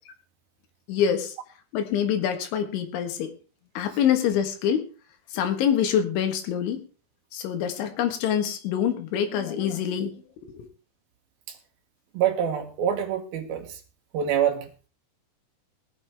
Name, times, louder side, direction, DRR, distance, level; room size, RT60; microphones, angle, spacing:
voice 1, 0.9-1.3 1.7-3.3 3.8-4.9 5.3-6.8 7.3-10.1 10.4-10.7, left 9 dB, 80° left, 6 dB, 3.9 m, -25 dB
voice 2, 12.1-13.8 14.1-14.9, right 9 dB, 65° right, 4 dB, 3.0 m, -26 dB
20.5 x 9.5 x 3.5 m, 0.36 s
omnidirectional pair, 5.4 m